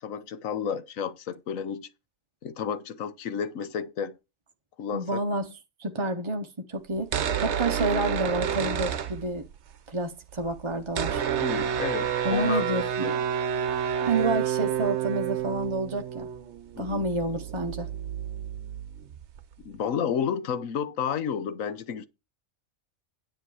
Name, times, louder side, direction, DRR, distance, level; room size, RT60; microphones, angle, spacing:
voice 1, 0.0-1.9 2.4-4.2 4.8-5.2 11.4-13.2 16.7-17.0 19.6-22.1, left 7 dB, 75° left, 1.3 m, -31 dB
voice 2, 4.9-5.5 5.8-9.4 9.9-11.2 12.2-13.2 14.0-16.3 16.8-17.9, right 2 dB, 30° right, 0.7 m, -29 dB
sound 1, 7.0-9.7 10.0-10.1 10.2-19.7, right 9 dB, 60° right, 1.0 m, -30 dB
10.0 x 6.3 x 4.8 m
omnidirectional pair, 1.4 m